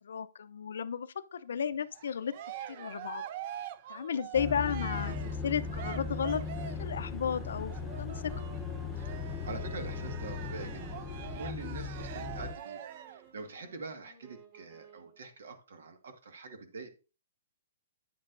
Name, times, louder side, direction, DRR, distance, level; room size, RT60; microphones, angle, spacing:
voice 1, 0.0-2.3 2.7-3.2 3.9-8.3, left 7 dB, 70° left, 0.5 m, -34 dB
Cheering, 1.9-6.9 7.7-13.3, right 11 dB, 35° right, 0.4 m, -45 dB
sound 1, 4.3-12.5, left 5 dB, 5° left, 0.7 m, -38 dB
sound 2, 4.9-15.3, right 4 dB, 55° right, 4.9 m, -57 dB
voice 2, 9.4-16.9, right 4 dB, 70° right, 1.6 m, -45 dB
9.6 x 7.4 x 2.6 m
hypercardioid pair, 170°, 0 cm